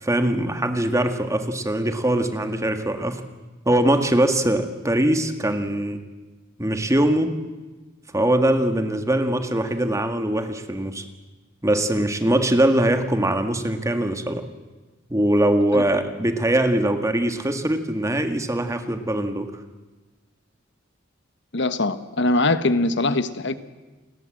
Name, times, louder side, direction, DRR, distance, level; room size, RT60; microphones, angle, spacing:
voice 1, 0.0-3.2 3.7-6.0 6.6-7.3 8.1-11.0 11.6-14.5 15.1-19.5, right 1 dB, 15° right, 7 dB, 1.9 m, -22 dB
voice 2, 21.5-23.5, left 2 dB, 65° left, 12 dB, 1.3 m, -22 dB
29.0 x 20.5 x 7.8 m, 1.2 s
head